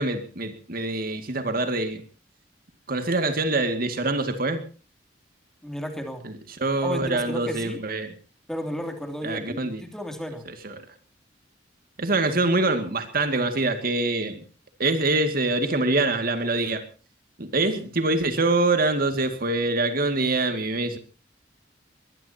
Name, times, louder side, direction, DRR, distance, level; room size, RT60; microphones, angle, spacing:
voice 1, 0.0-2.0 2.9-4.6 6.2-6.3 6.6-8.1 9.2-9.8 10.5-10.8 12.0-14.4 14.8-16.8 17.4-21.0, right 2 dB, 55° right, 8 dB, 2.2 m, -25 dB
voice 2, 5.6-6.2 6.8-7.8 8.5-10.5, equal, 5° left, 6 dB, 2.9 m, -33 dB
22.0 x 21.0 x 2.9 m, 0.36 s
head